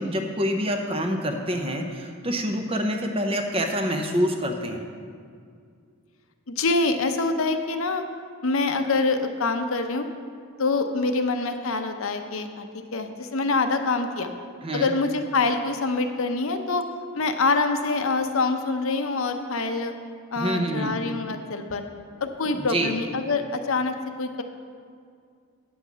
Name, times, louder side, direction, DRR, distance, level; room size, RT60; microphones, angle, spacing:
voice 1, 0.0-4.8 14.6-14.9 20.4-21.0 22.5-22.9, equal, 25° right, 4 dB, 0.7 m, -26 dB
voice 2, 6.5-8.0 8.4-10.0 10.6-14.3 14.7-16.8 17.1-19.9 20.3-21.8 22.2-24.4, left 3 dB, 65° left, 6 dB, 0.7 m, -25 dB
9.5 x 5.6 x 7.3 m, 2.2 s
head